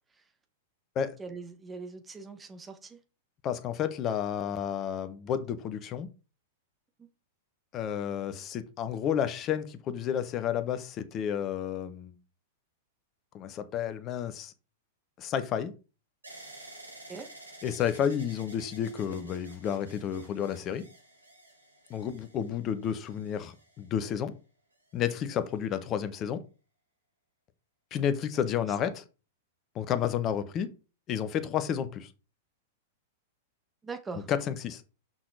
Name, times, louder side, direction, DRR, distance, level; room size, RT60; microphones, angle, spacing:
voice 1, 1.2-3.0 17.1-17.3 28.8-28.9 33.8-34.3, right 4 dB, 15° right, 1.5 m, -41 dB
voice 2, 3.4-6.1 7.7-12.2 13.3-14.5 15.2-15.7 17.6-20.9 21.9-24.3 24.9-26.4 27.9-29.0 29.7-30.7 31.1-32.1 34.3-34.8, left 9 dB, 30° left, 1.1 m, -31 dB
sound 1, 16.2-24.2 25.0-25.6, right 1 dB, 85° right, 3.0 m, -52 dB
6.0 x 6.0 x 4.9 m
figure-of-eight pair, 95°, 0 cm